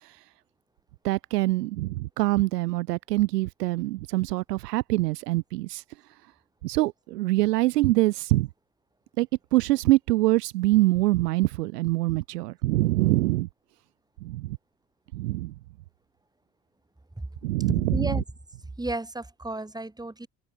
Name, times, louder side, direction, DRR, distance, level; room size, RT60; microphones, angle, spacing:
voice 1, 1.0-5.8 6.6-8.5 9.2-13.5 14.2-14.6 15.1-15.5 17.4-18.2, right 19 dB, 75° right, 0.6 m, -24 dB
voice 2, 17.9-18.2 18.8-20.3, right 2 dB, 10° right, 2.1 m, -31 dB
figure-of-eight pair, 55°, 48 cm